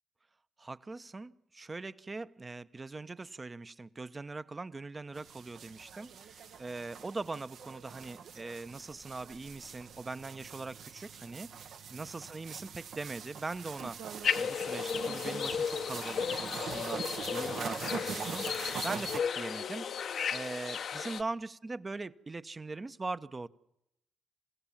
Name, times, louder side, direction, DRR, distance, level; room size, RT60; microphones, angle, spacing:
voice 1, 0.6-14.0 14.4-18.5 18.8-20.1 20.3-23.5, right 3 dB, 35° right, 13 dB, 0.9 m, -41 dB
sound 1, 5.1-19.2, right 7 dB, 65° right, 1.1 m, -43 dB
sound 2, 14.2-21.2, left 7 dB, 60° left, 0.8 m, -34 dB
28.0 x 16.5 x 7.4 m, 0.84 s
hypercardioid pair, 40°, 0 cm